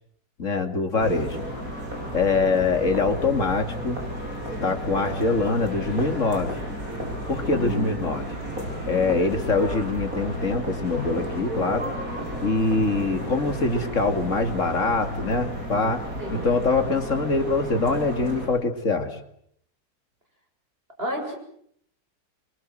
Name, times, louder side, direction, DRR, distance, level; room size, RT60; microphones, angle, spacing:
voice 1, 0.4-1.4 2.1-4.0 4.6-6.6 7.3-8.3 8.9-11.9 12.4-16.0 16.3-19.2, left 3 dB, 45° left, 6 dB, 2.9 m, -24 dB
sound 1, 1.0-18.5, equal, 55° right, 8.4 m, -33 dB
voice 2, 7.5-8.0 16.2-16.5 21.0-21.4, left 2 dB, 35° right, 3 dB, 7.4 m, -32 dB
27.0 x 24.0 x 7.8 m, 0.69 s
omnidirectional pair, 1.8 m